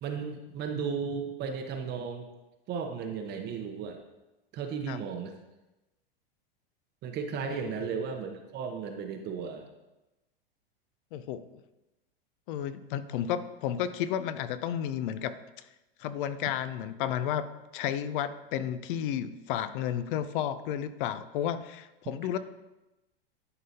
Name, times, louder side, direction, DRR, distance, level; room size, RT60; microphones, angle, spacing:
voice 1, 0.0-2.3 2.7-4.0 4.5-5.3 7.0-9.7, right 6 dB, 35° right, 4 dB, 0.8 m, -35 dB
voice 2, 11.1-11.6 12.5-15.7 16.0-17.5 17.7-22.4, left 10 dB, 60° left, 13 dB, 0.5 m, -32 dB
11.0 x 3.9 x 2.8 m, 1.0 s
hypercardioid pair, 120°, 29 cm